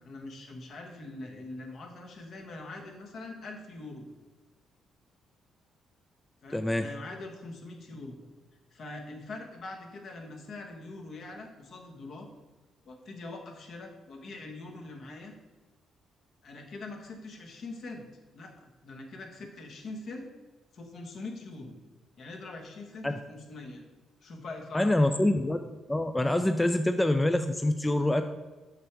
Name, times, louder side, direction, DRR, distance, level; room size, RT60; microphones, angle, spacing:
voice 1, 0.0-4.1 6.4-8.2 8.7-12.3 12.8-15.3 16.4-18.1 18.3-20.3 20.7-21.7 22.2-23.8 24.2-25.2, left 2 dB, 60° left, 2 dB, 1.3 m, -43 dB
voice 2, 6.5-6.9 23.0-23.1 24.7-25.6 25.9-28.2, left 1 dB, 10° left, 8 dB, 0.4 m, -25 dB
6.6 x 3.4 x 6.0 m, 1.2 s
cardioid pair, 90°, 0 cm